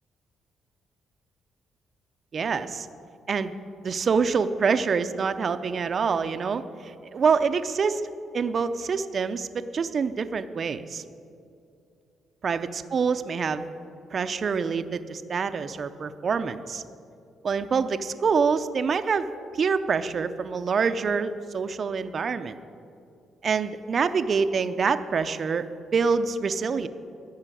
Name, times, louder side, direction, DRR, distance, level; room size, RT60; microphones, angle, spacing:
voice 1, 2.3-2.9 3.3-3.5 3.8-8.0 8.3-11.0 12.4-13.6 14.1-16.8 17.4-19.3 19.5-22.6 23.4-25.7 25.9-26.9, right 5 dB, 45° right, 11 dB, 0.6 m, -26 dB
14.0 x 5.7 x 9.1 m, 2.5 s
cardioid pair, 90°, 0 cm